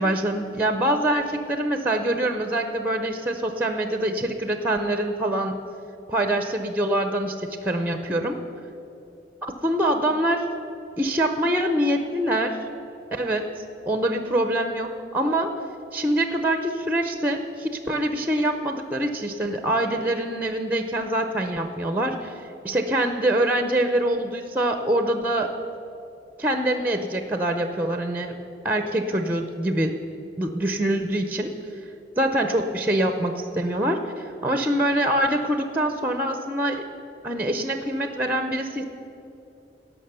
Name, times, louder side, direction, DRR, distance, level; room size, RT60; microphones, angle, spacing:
voice 1, 0.0-5.6 6.1-8.4 9.6-10.5 11.0-12.6 13.1-15.5 15.9-25.5 26.4-28.4 28.6-29.9 30.4-31.5 32.2-36.9 37.2-38.8, right 1 dB, 10° right, 7 dB, 0.6 m, -24 dB
17.5 x 5.9 x 6.8 m, 2.8 s
head